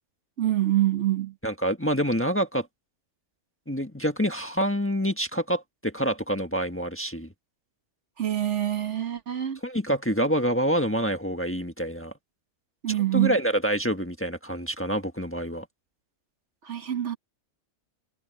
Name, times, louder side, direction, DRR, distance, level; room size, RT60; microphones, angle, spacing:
voice 1, 0.4-1.3 8.2-9.6 12.8-13.4 16.6-17.2, right 13 dB, 60° right, 1.6 m, -25 dB
voice 2, 1.4-2.7 3.7-7.3 9.6-12.1 12.9-15.6, equal, 10° left, 1.4 m, -27 dB
omnidirectional pair, 1.4 m